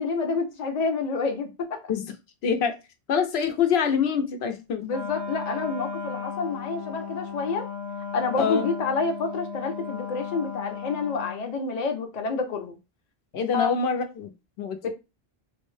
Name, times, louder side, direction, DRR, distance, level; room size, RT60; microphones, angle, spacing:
voice 1, 0.0-1.8 4.8-7.7 8.1-12.8 13.5-13.7 14.8-14.9, left 4 dB, 45° left, 0.7 m, -28 dB
voice 2, 2.4-2.8 3.1-4.8 8.4-8.7 13.3-14.3 14.6-14.9, left 6 dB, 90° left, 0.9 m, -25 dB
Wind instrument woodwind instrument, 4.9-11.5, left 5 dB, 90° right, 1.2 m, -35 dB
3.8 x 2.1 x 3.1 m
omnidirectional pair, 1.0 m